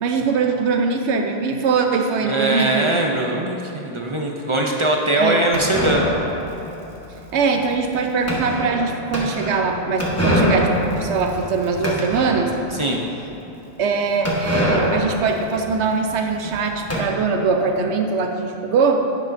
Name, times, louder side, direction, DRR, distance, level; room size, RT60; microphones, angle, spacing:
voice 1, 0.0-3.0 5.2-5.4 7.3-12.5 13.8-19.0, right 5 dB, 70° right, 4 dB, 1.0 m, -22 dB
voice 2, 2.2-6.0 12.8-13.0, right 1 dB, 40° right, 0 dB, 0.5 m, -21 dB
sound 1, 5.5-12.8 13.2-13.3 13.5-13.6 14.2-17.0, equal, 15° left, 1.1 m, -24 dB
10.5 x 8.4 x 2.6 m, 3.0 s
omnidirectional pair, 1.3 m